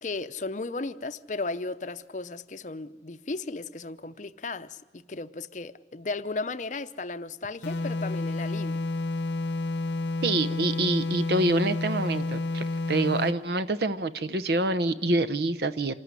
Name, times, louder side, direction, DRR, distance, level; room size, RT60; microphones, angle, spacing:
voice 1, 0.0-8.8, left 3 dB, 45° left, 12 dB, 0.7 m, -35 dB
sound 1, 7.6-13.4, left 2 dB, 75° left, 0.9 m, -30 dB
voice 2, 10.2-15.9, right 2 dB, 60° right, 12 dB, 0.8 m, -26 dB
26.5 x 14.0 x 9.7 m, 1.3 s
head